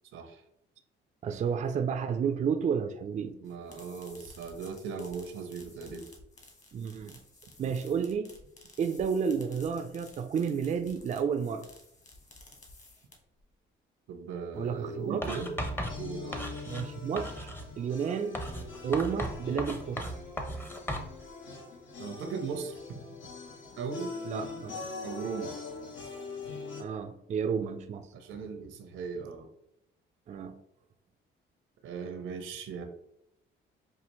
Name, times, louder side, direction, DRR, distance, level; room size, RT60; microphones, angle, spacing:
voice 1, 1.2-3.4 6.7-7.2 7.6-8.3 8.8-11.6 14.6-15.2 16.7-17.5 17.8-18.4 18.8-20.1 24.3-24.8 26.8-28.1 30.3-30.6, right 6 dB, 40° right, 7 dB, 0.4 m, -31 dB
sound 1, 3.4-13.4, left 2 dB, 35° left, 1.3 m, -54 dB
voice 2, 3.4-6.1 14.1-15.5 16.0-16.4 22.0-23.1 23.8-24.1 25.0-25.5 28.1-29.5 31.8-32.8, right 5 dB, 80° right, 7 dB, 0.7 m, -38 dB
sound 2, 14.5-26.8, left 5 dB, 80° left, 0.9 m, -43 dB
Writing, 15.2-16.9 17.2-17.7 18.3-21.1, equal, 10° left, 0.6 m, -36 dB
5.5 x 2.4 x 3.0 m, 0.79 s
cardioid pair, 90°, 20 cm